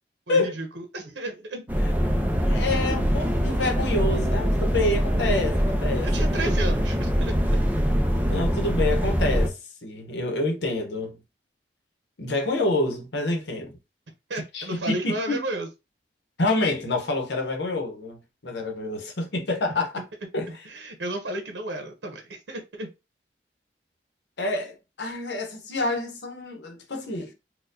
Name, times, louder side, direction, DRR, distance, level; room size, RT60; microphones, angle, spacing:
voice 1, 0.3-1.7 6.0-7.3 14.3-15.7 20.5-22.9, right 2 dB, 85° right, 0.8 m, -33 dB
sound 1, 1.7-9.5, equal, 10° right, 0.4 m, -23 dB
voice 2, 2.4-6.5 8.3-11.2 12.2-13.8 14.5-15.5 16.4-20.0 20.3-20.6 24.4-27.3, left 2 dB, 85° left, 0.8 m, -27 dB
4.2 x 2.2 x 2.6 m
head